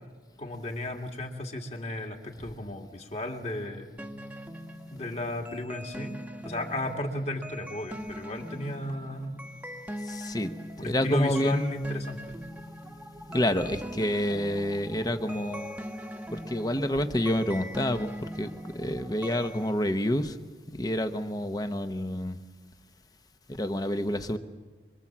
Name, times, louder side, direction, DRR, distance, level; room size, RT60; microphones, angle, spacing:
voice 1, 0.4-4.0 4.9-6.2 6.4-9.4 10.8-12.5 13.6-13.8, left 1 dB, 40° left, 3 dB, 2.5 m, -34 dB
Trap tone, 4.0-19.7, equal, 10° right, 1.2 m, -41 dB
voice 2, 10.0-10.5 10.9-11.7 13.3-15.8 16.3-20.4 20.7-22.4 23.5-24.4, left 1 dB, 20° left, 8 dB, 0.9 m, -28 dB
25.5 x 24.0 x 7.5 m, 1.4 s
head